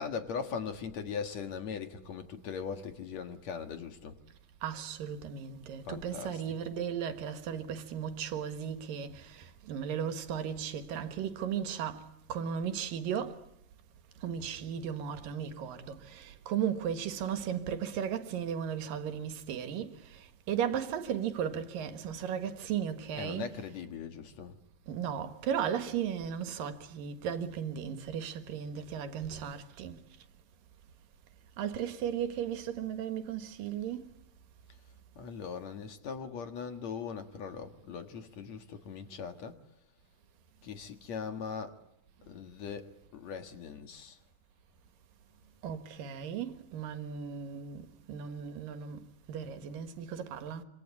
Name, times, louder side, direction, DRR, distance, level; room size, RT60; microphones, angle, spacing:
voice 1, 0.0-4.2 5.9-6.4 23.2-24.6 35.2-39.6 40.6-41.8 42.2-44.2, left 6 dB, 55° left, 2.6 m, -40 dB
voice 2, 4.6-13.4 14.2-23.6 24.9-30.0 31.6-34.1 45.6-49.0 49.3-50.6, right 8 dB, 75° right, 3.2 m, -36 dB
27.0 x 26.0 x 8.4 m
omnidirectional pair, 4.0 m